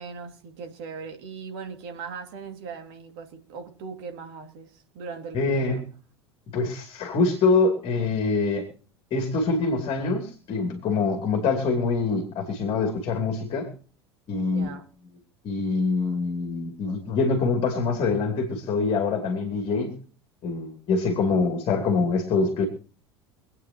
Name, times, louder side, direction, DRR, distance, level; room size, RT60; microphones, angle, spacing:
voice 1, 0.0-5.8 14.5-14.9 21.2-21.4, right 5 dB, 60° right, 5 dB, 2.5 m, -39 dB
voice 2, 5.3-5.8 6.5-8.7 9.1-13.7 14.3-14.7 15.4-19.9 20.4-22.6, left 4 dB, 40° left, 4 dB, 2.9 m, -24 dB
25.5 x 9.1 x 3.0 m, 0.40 s
figure-of-eight pair, 75°, 14 cm